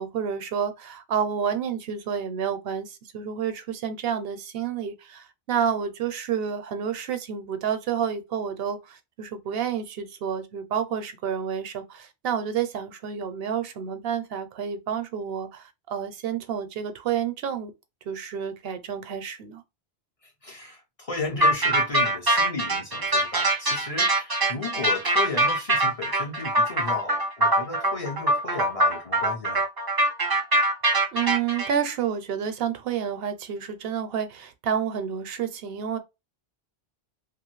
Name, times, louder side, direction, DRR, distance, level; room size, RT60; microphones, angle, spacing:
voice 1, 0.0-17.7 18.1-19.6 31.1-36.0, right 8 dB, 70° right, 0.8 m, -29 dB
voice 2, 20.4-29.6, left 3 dB, 40° left, 0.6 m, -34 dB
sound 1, 21.4-31.7, right 1 dB, 30° right, 0.5 m, -23 dB
2.6 x 2.4 x 3.0 m
omnidirectional pair, 1.1 m